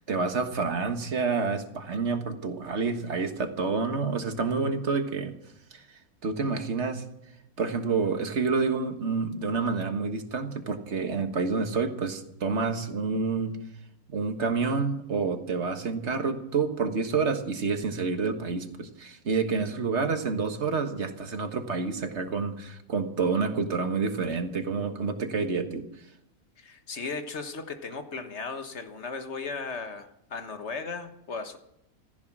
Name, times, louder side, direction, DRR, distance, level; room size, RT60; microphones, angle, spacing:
voice 1, 0.0-5.3 5.7-5.8 6.2-7.0 7.6-13.6 14.1-25.9, right 4 dB, 50° right, 6 dB, 1.8 m, -28 dB
voice 2, 26.6-31.6, left 4 dB, 50° left, 7 dB, 1.6 m, -36 dB
15.0 x 14.5 x 6.1 m, 0.80 s
omnidirectional pair, 1.6 m